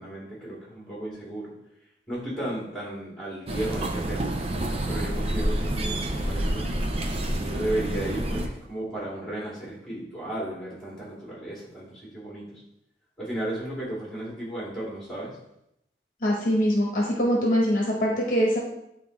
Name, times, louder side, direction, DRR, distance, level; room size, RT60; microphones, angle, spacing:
voice 1, 0.0-1.5 2.1-4.3 4.9-6.9 7.4-12.6 13.2-15.4, right 1 dB, ahead, -6 dB, 2.4 m, -34 dB
sound 1, 3.5-8.5, right 1 dB, 35° right, 0.6 m, -28 dB
voice 2, 16.2-18.6, equal, 45° left, -2 dB, 1.0 m, -23 dB
9.2 x 3.8 x 3.3 m, 0.81 s
head